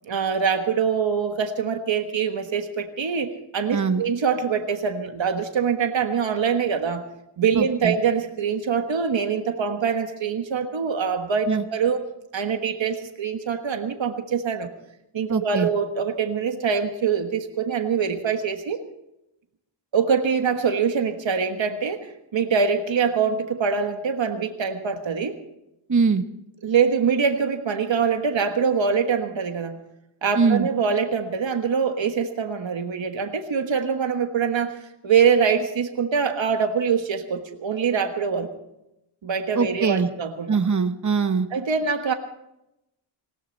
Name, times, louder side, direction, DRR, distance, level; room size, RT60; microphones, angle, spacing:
voice 1, 0.1-7.1 7.4-12.0 12.3-14.7 15.1-18.8 19.9-25.4 26.6-29.8 30.2-38.5 39.2-40.6 41.5-42.1, right 6 dB, 65° right, 6 dB, 1.5 m, -24 dB
voice 2, 3.7-4.0 7.6-7.9 11.5-11.6 15.3-15.7 25.9-26.2 30.3-30.7 39.5-40.1 40.5-41.5, right 5 dB, 35° right, 9 dB, 1.1 m, -22 dB
19.5 x 16.5 x 4.2 m, 0.86 s
cardioid pair, 65°, 50 cm